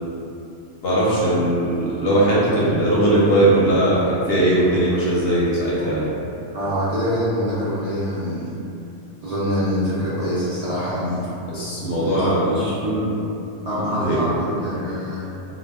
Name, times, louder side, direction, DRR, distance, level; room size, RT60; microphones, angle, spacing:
voice 1, 0.8-6.1 11.5-12.5 14.0-14.2, right 1 dB, 60° left, -7 dB, 0.7 m, -19 dB
voice 2, 6.5-8.5 9.2-11.3 12.0-13.1 13.7-15.2, equal, 60° right, -11 dB, 0.4 m, -24 dB
2.1 x 2.1 x 3.3 m, 2.7 s
omnidirectional pair, 1.3 m